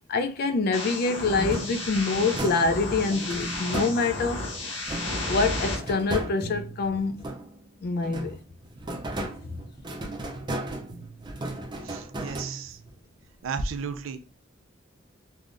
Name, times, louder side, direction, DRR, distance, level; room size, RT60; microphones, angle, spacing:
voice 1, 0.1-4.5 5.3-7.3 7.8-8.4, left 3 dB, 50° left, 0.4 m, -26 dB
sound 1, 0.7-5.8, left 2 dB, 80° left, 1.0 m, -33 dB
sound 2, 1.4-4.4 4.8-7.7 8.0-13.0, right 1 dB, 25° right, 0.5 m, -35 dB
voice 2, 11.8-12.8 13.4-14.2, right 4 dB, 85° right, 0.4 m, -33 dB
3.4 x 2.2 x 2.5 m
head